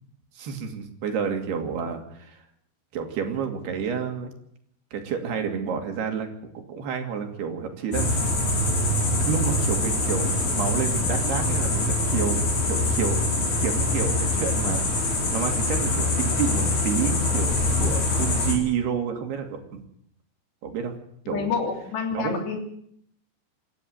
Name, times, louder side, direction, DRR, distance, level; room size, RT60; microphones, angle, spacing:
voice 1, 0.4-2.4 2.9-4.3 4.9-6.3 6.7-8.3 9.2-19.8 20.6-20.9 21.3-21.5 22.1-22.4, right 7 dB, 70° right, 4 dB, 4.6 m, -30 dB
sound 1, 7.9-18.6, left 2 dB, 45° left, 5.7 m, -24 dB
voice 2, 21.3-22.8, left 5 dB, 90° left, 3 dB, 5.5 m, -29 dB
27.0 x 12.5 x 8.0 m, 0.69 s
omnidirectional pair, 4.8 m